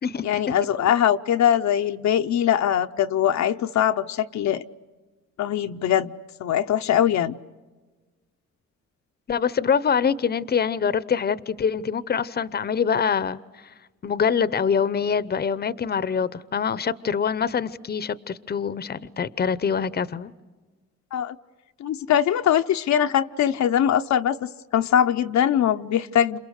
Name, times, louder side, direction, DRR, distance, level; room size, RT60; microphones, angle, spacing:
voice 1, 0.2-4.6 5.4-6.1 6.4-7.4 21.1-21.4 21.8-26.4, left 10 dB, 65° left, 0.8 m, -22 dB
voice 2, 9.3-13.4 14.0-20.3, left 6 dB, 30° left, 0.8 m, -24 dB
29.5 x 28.0 x 6.5 m
cardioid pair, 90°, 30 cm